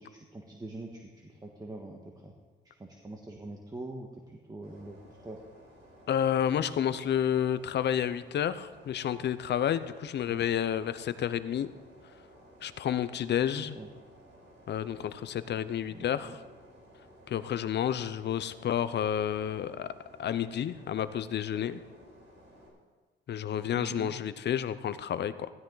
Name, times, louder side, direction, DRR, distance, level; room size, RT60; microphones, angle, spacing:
voice 1, 0.0-2.3 2.6-5.4 10.2-10.4 13.6-13.9 15.9-16.3 23.7-24.1, right 2 dB, 20° right, 0 dB, 1.6 m, -44 dB
sound 1, 4.6-22.7, equal, 75° right, 4.5 m, -56 dB
voice 2, 6.1-11.7 12.6-13.8 14.7-16.4 17.3-19.9 20.2-21.8 23.3-25.5, left 9 dB, 60° left, 13 dB, 0.7 m, -30 dB
16.0 x 12.5 x 4.0 m, 1.4 s
cardioid pair, 90°, 20 cm